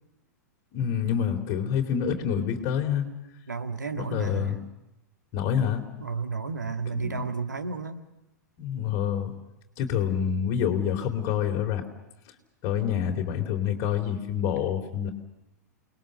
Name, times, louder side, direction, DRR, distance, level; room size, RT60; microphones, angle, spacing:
voice 1, 0.7-3.0 4.0-4.6 5.3-5.8 6.9-7.2 8.6-9.3 9.8-11.8 12.6-15.1, left 8 dB, 40° left, 4 dB, 3.5 m, -27 dB
voice 2, 3.5-4.6 6.0-8.0, right 4 dB, 80° right, 6 dB, 1.9 m, -32 dB
29.5 x 20.5 x 6.6 m, 0.94 s
figure-of-eight pair, 100°, 10 cm